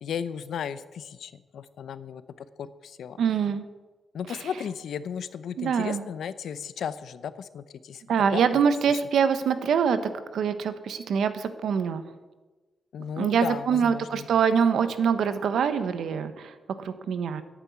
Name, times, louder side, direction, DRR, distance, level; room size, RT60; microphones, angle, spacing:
voice 1, 0.0-2.2 2.6-3.2 4.1-8.0 8.3-8.6 12.9-14.3, left 8 dB, 85° left, 14 dB, 0.7 m, -35 dB
voice 2, 3.2-3.6 4.3-4.5 5.6-6.0 8.1-10.0 10.3-12.0 13.2-17.4, right 7 dB, 85° right, 11 dB, 1.1 m, -24 dB
11.5 x 9.0 x 9.4 m, 1.2 s
wide cardioid pair, 140°, 0 cm